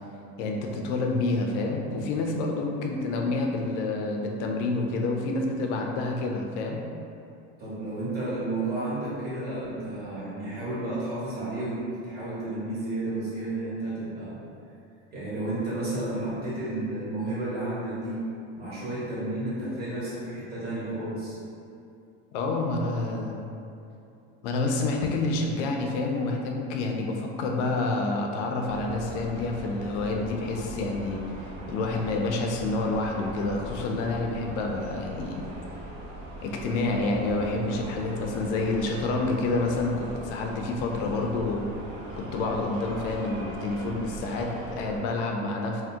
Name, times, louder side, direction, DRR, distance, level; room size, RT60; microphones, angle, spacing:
voice 1, 0.4-6.8 22.3-23.5 24.4-31.2 31.7-35.4 36.4-41.6 42.2-45.8, left 2 dB, 75° left, 1 dB, 0.5 m, -28 dB
voice 2, 7.6-14.4 15.1-18.2 18.6-21.4, right 2 dB, 25° right, -9 dB, 1.2 m, -32 dB
sound 1, 28.7-45.0, equal, 55° right, 0.7 m, -40 dB
2.7 x 2.1 x 3.5 m, 2.6 s
supercardioid pair, 135°, 36 cm